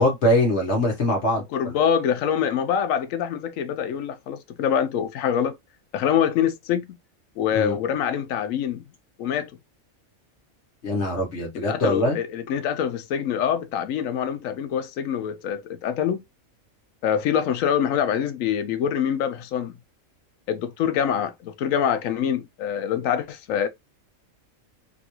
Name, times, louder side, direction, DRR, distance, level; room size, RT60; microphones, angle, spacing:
voice 1, 0.0-1.7 7.5-7.8 10.8-12.2, left 1 dB, 60° left, 1.3 m, -22 dB
voice 2, 1.5-5.5 5.9-6.9 7.4-8.9 9.2-9.5 11.7-16.2 17.0-19.7 20.5-23.7, left 8 dB, 80° left, 1.0 m, -25 dB
3.7 x 2.3 x 2.9 m
omnidirectional pair, 1.4 m